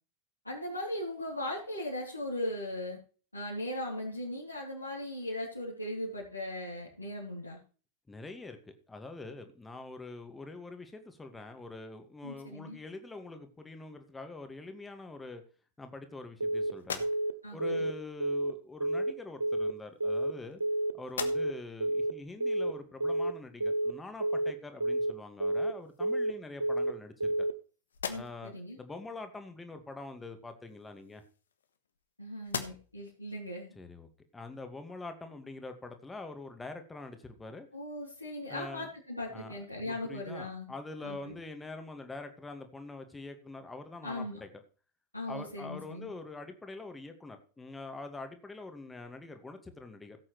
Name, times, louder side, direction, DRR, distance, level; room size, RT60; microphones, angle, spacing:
voice 1, 0.4-3.0 3.3-7.6 12.2-12.8 17.4-17.8 28.1-28.8 32.2-33.7 37.7-40.7 41.0-41.3 44.0-44.4 45.1-46.1, left 1 dB, 85° left, -5 dB, 3.3 m, -38 dB
voice 2, 8.1-15.4 15.8-17.1 17.5-20.6 20.9-27.5 28.1-31.2 33.8-34.1 34.3-37.7 38.5-38.9 39.3-44.5 45.3-50.2, left 3 dB, 10° left, 7 dB, 2.0 m, -45 dB
Telephone, 16.4-16.7 17.0-17.3 17.6-17.9 18.2-18.5 18.8-19.1 19.4-19.7 20.0-20.3 20.6-20.9 21.2-21.5 21.8-22.1 22.4-22.7 23.0-23.3 23.6-23.9 24.2-24.5 24.8-25.1 25.4-25.7 26.0-26.3 26.6-26.9 27.2-27.5, right 1 dB, 80° right, 0.6 m, -30 dB
sound 1, 16.8-17.6 18.7-18.9 19.8-20.7 21.0-21.8 22.3-22.4 25.0-25.1 25.6-26.3 26.8-27.6 27.9-28.6 30.6-32.1 32.4-33.1, left 7 dB, 65° left, 1.4 m, -42 dB
16.5 x 8.4 x 3.3 m, 0.37 s
figure-of-eight pair, 90°, 0 cm